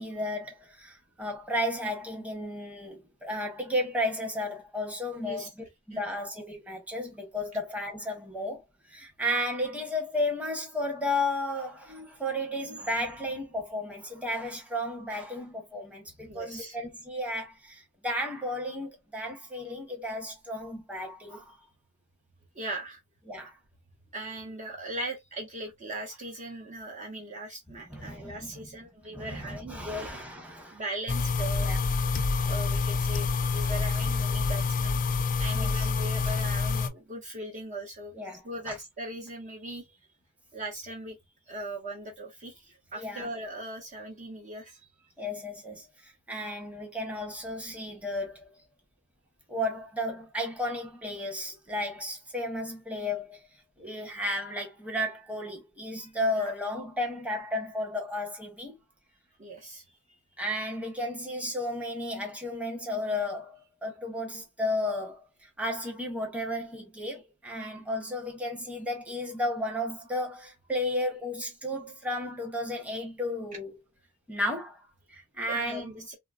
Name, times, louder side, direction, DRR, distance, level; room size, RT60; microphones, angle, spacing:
voice 1, 0.0-5.5 5.9-21.5 23.3-23.5 27.9-28.7 29.1-30.8 31.6-31.8 35.5-35.9 38.1-38.7 43.0-43.3 45.2-48.6 49.5-53.5 53.8-58.8 60.4-73.7 74.3-76.0, left 1 dB, 5° right, 0.9 m, -33 dB
voice 2, 5.9-6.3 16.3-16.8 22.5-23.0 24.1-30.1 30.7-31.7 32.5-38.1 38.4-40.0 40.5-41.2 41.5-44.9 56.0-56.1 56.3-56.5 59.4-60.2 75.5-76.2, right 1 dB, 35° right, 0.7 m, -39 dB
sound 1, 31.1-36.9, left 4 dB, 40° left, 0.4 m, -27 dB
3.7 x 2.0 x 2.3 m
head